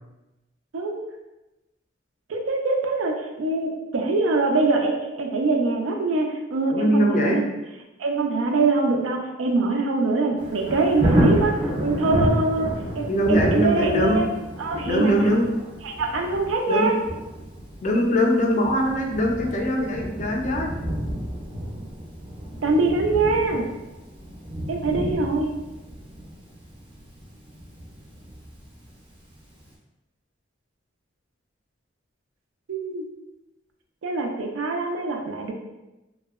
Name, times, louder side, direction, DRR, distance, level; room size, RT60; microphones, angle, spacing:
voice 1, 2.3-7.4 8.0-11.5 11.8-14.3 14.6-15.2 15.8-16.9 22.6-23.7 24.7-25.5 32.7-33.0 34.0-35.5, right 3 dB, 85° right, 2 dB, 0.4 m, -23 dB
voice 2, 6.7-7.4 13.1-14.2 14.9-15.6 16.7-17.0 17.8-20.7, equal, 40° left, 1 dB, 0.3 m, -22 dB
Thunder, 10.4-29.1 29.6-29.7, equal, 25° right, 0.4 m, -29 dB
2.7 x 2.1 x 2.3 m, 1.0 s
head